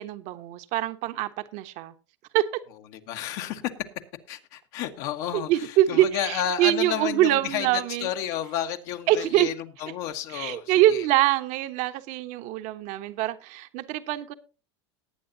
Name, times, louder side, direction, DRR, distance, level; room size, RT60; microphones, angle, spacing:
voice 1, 0.0-1.9 2.3-2.5 5.3-8.1 9.1-9.5 10.3-14.3, right 14 dB, 55° right, 1.2 m, -24 dB
voice 2, 2.9-3.6 4.3-11.1, left 10 dB, 60° left, 1.5 m, -31 dB
18.5 x 8.9 x 2.8 m
hypercardioid pair, 100°, 15 cm